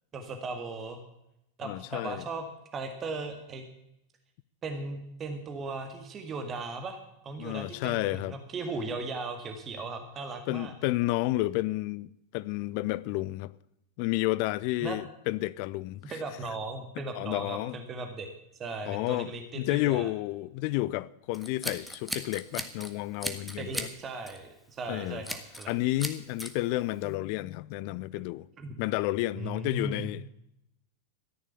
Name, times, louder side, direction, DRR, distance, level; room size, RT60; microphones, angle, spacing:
voice 1, 0.1-1.0 1.6-2.5 2.7-3.7 4.6-7.0 7.2-10.7 14.8-15.0 16.1-18.3 18.6-20.1 23.6-25.7 28.6-28.7 29.4-30.1, right 3 dB, 25° right, 1.9 m, -37 dB
voice 2, 1.6-2.2 7.4-8.3 10.5-13.5 14.0-16.1 17.2-17.8 18.9-19.3 19.6-23.9 24.9-25.2 25.7-28.5 28.8-30.3, left 18 dB, 45° left, 0.5 m, -31 dB
Scissors, 21.3-22.9 23.2-23.9 24.3-24.5 25.2-25.7 26.0-26.5, equal, ahead, 1.5 m, -36 dB
14.0 x 10.5 x 7.0 m
figure-of-eight pair, 90°, 0 cm